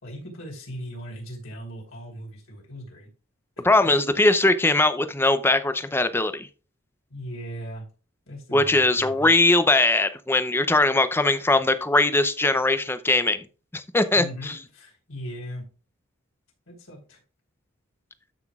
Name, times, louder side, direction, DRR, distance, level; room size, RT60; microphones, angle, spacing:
voice 1, 0.0-3.1 3.8-3.9 7.1-7.8 8.3-9.3 14.1-15.6 16.7-17.2, equal, 65° left, -2 dB, 3.9 m, -38 dB
voice 2, 3.6-6.5 8.5-13.4 13.7-14.6, left 2 dB, 10° left, 11 dB, 0.5 m, -21 dB
13.0 x 5.9 x 2.4 m, 0.35 s
head